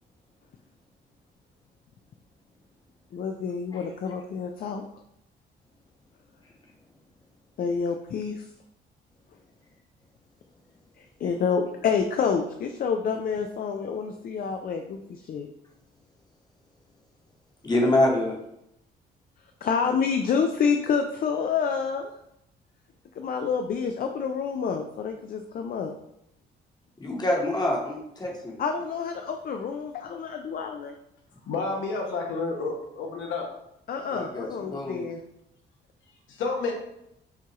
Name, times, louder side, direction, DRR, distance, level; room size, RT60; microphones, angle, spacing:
voice 1, 3.1-4.8 7.6-8.5 11.0-15.5 17.7-17.9 19.6-22.1 23.2-25.9 28.6-30.9 33.9-35.2, left 6 dB, 50° left, 5 dB, 0.4 m, -28 dB
voice 2, 17.6-18.4 27.0-28.5 34.1-35.1, left 1 dB, 20° left, -1 dB, 1.0 m, -25 dB
voice 3, 31.5-33.4 36.4-36.7, left 4 dB, 75° left, 0 dB, 1.0 m, -29 dB
5.6 x 2.3 x 2.9 m, 0.79 s
cardioid pair, 90°, 20 cm